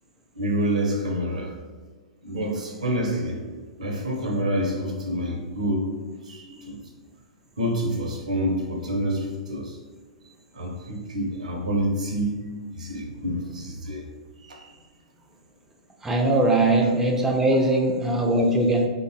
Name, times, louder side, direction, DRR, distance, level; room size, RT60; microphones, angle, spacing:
voice 1, 0.3-1.6 2.2-3.5 3.8-6.9 7.6-9.8 10.5-14.1 14.4-14.8 16.8-16.9, right 1 dB, 80° right, 0.5 m, -28 dB
voice 2, 16.0-18.9, right 2 dB, 10° right, 0.4 m, -21 dB
3.3 x 2.1 x 2.6 m
hypercardioid pair, 110°, 4 cm